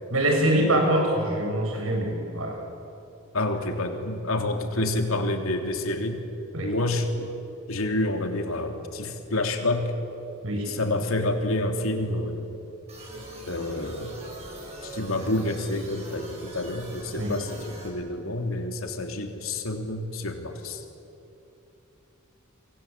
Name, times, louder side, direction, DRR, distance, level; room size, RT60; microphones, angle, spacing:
voice 1, 0.1-2.6 6.5-6.7 10.4-10.7 17.2-17.4, right 1 dB, 70° right, 2 dB, 7.1 m, -24 dB
voice 2, 3.3-6.2 6.6-7.3 7.7-9.9 10.7-12.5 13.5-14.1 14.8-20.8, left 2 dB, 75° left, 4 dB, 3.3 m, -28 dB
sound 1, 12.9-17.9, right 1 dB, 30° right, 7.2 m, -42 dB
29.0 x 23.5 x 8.6 m, 2.9 s
head